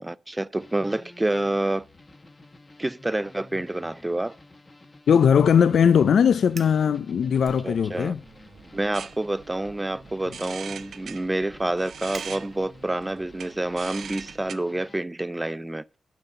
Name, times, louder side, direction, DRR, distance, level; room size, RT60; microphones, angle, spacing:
voice 1, 0.0-1.9 2.8-4.3 7.6-8.1 8.7-15.8, right 1 dB, 15° right, 0.4 m, -28 dB
sound 1, 0.6-15.0, left 2 dB, 25° left, 1.4 m, -51 dB
voice 2, 5.1-8.2, left 7 dB, 75° left, 0.4 m, -19 dB
Fire, 6.4-6.9 7.4-8.2 8.6-8.9 9.6-13.0, right 4 dB, 50° right, 1.1 m, -47 dB
sound 2, 7.7-14.5, right 7 dB, 80° right, 0.8 m, -42 dB
12.0 x 5.8 x 5.4 m
wide cardioid pair, 115°, 0 cm